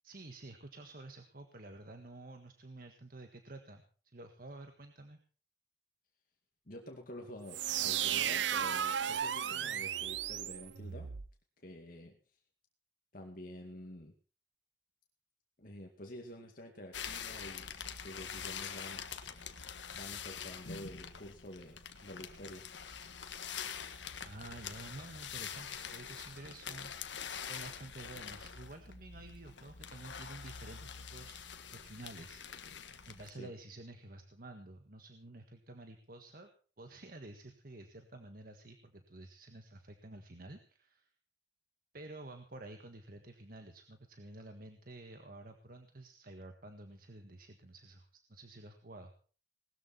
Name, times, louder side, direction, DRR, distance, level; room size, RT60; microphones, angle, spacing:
voice 1, 0.0-3.8 4.1-5.2 24.2-32.6 33.0-36.5 36.8-41.1 41.9-49.1, right 2 dB, 50° right, 6 dB, 1.6 m, -51 dB
voice 2, 6.7-11.1 11.6-12.4 13.1-14.1 15.6-17.8 18.0-19.1 19.9-22.6 33.3-33.5, left 1 dB, 50° left, 2 dB, 2.2 m, -49 dB
sound 1, 7.5-11.3, right 9 dB, 85° right, 0.7 m, -34 dB
sound 2, 16.9-33.3, left 7 dB, 85° left, 1.6 m, -45 dB
20.0 x 13.5 x 4.4 m, 0.39 s
head